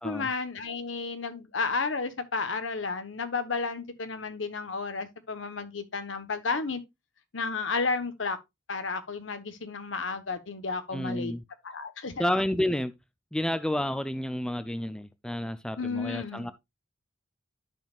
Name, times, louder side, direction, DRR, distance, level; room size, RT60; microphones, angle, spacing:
voice 1, 0.0-6.8 7.3-8.4 8.7-11.3 11.6-12.2 15.8-16.5, left 4 dB, 90° left, 1.1 m, -32 dB
voice 2, 10.9-11.4 12.2-12.9 13.3-16.5, left 1 dB, 5° left, 0.5 m, -30 dB
12.0 x 5.5 x 2.4 m
head